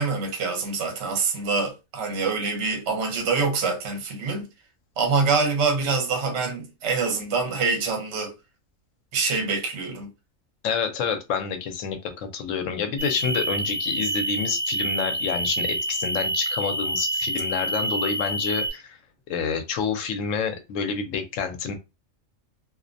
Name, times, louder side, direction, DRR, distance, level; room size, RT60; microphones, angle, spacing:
voice 1, 0.0-4.5 5.0-8.3 9.1-10.1, right 4 dB, 60° right, 1.0 m, -25 dB
voice 2, 10.6-19.0 19.3-21.7, left 6 dB, 70° left, 0.9 m, -28 dB
sound 1, 13.0-18.7, right 1 dB, 40° right, 0.6 m, -27 dB
2.4 x 2.1 x 2.5 m
omnidirectional pair, 1.4 m